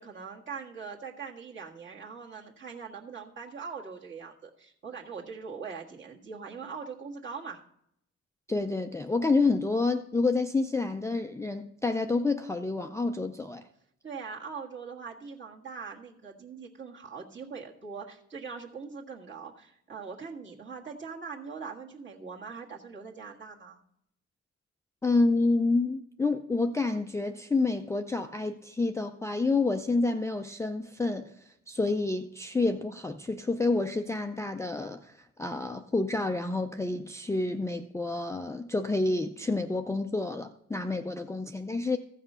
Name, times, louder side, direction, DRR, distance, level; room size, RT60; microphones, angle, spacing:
voice 1, 0.0-7.6 14.0-23.8, right 5 dB, 40° right, 1.7 m, -42 dB
voice 2, 8.5-13.6 25.0-42.0, left 3 dB, 10° left, 0.4 m, -28 dB
15.0 x 5.8 x 5.5 m
cardioid pair, 130°, 29 cm